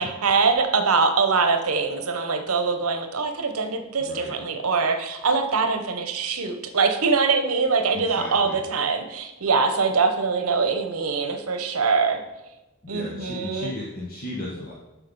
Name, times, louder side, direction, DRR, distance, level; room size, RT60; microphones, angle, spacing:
voice 1, 0.0-12.2 12.9-13.7, right 4 dB, 90° right, 7 dB, 1.0 m, -23 dB
voice 2, 4.0-4.3 7.9-8.6 12.8-14.7, left 2 dB, 45° left, -4 dB, 1.3 m, -35 dB
7.4 x 5.7 x 5.4 m, 1.0 s
head